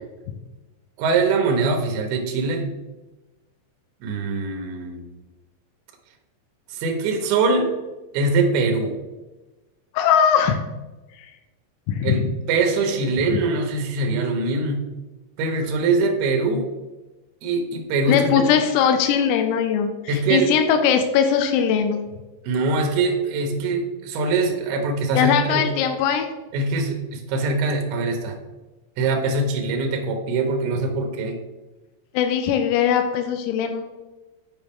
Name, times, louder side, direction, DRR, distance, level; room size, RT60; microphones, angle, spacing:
voice 1, 1.0-2.7 4.0-5.0 6.7-7.7 8.1-9.0 12.0-14.8 15.4-16.7 17.4-18.5 20.1-20.5 22.4-25.6 26.5-28.4 29.0-31.4, right 3 dB, 90° right, 3 dB, 2.2 m, -23 dB
voice 2, 9.9-10.6 11.9-12.3 18.1-22.0 25.2-26.3 32.1-33.8, left 8 dB, 90° left, 6 dB, 3.4 m, -20 dB
9.0 x 4.9 x 3.6 m, 1.1 s
omnidirectional pair, 5.9 m